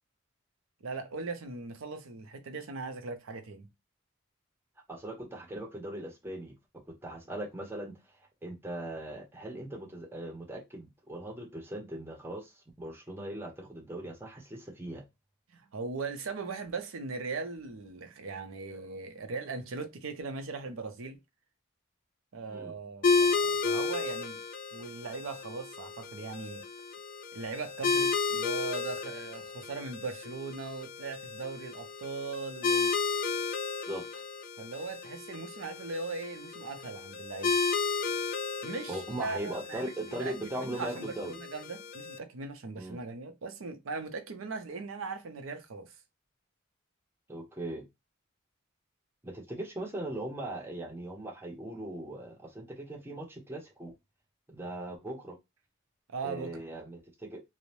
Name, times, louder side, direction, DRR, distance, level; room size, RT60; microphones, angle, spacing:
voice 1, 0.8-3.7 15.5-21.2 22.3-24.4 24.7-26.6 27.3-32.9 34.6-37.6 38.6-45.9 56.1-56.6, right 4 dB, 90° right, 0.6 m, -39 dB
voice 2, 4.9-6.6 6.9-8.0 8.4-15.0 22.5-22.7 33.9-34.2 38.9-41.4 42.8-43.0 47.3-47.9 49.2-53.9 54.5-55.4 56.2-57.4, right 1 dB, 10° right, 0.5 m, -39 dB
sound 1, 23.0-42.2, left 4 dB, 45° left, 0.3 m, -33 dB
2.6 x 2.0 x 3.0 m
head